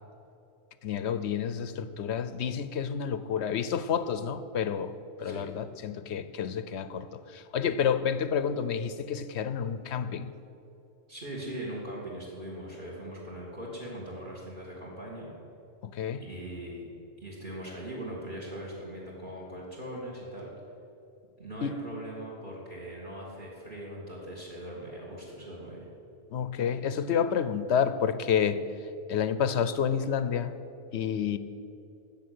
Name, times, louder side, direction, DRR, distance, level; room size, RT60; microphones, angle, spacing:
voice 1, 0.8-10.3 15.8-16.2 21.6-21.8 26.3-28.6 29.1-30.5 30.9-31.4, left 7 dB, 65° left, 13 dB, 0.9 m, -29 dB
voice 2, 11.1-15.4 16.2-16.9 17.2-20.5 21.4-25.9, right 1 dB, 40° right, -3 dB, 2.7 m, -40 dB
14.5 x 7.1 x 9.5 m, 2.8 s
omnidirectional pair, 1.3 m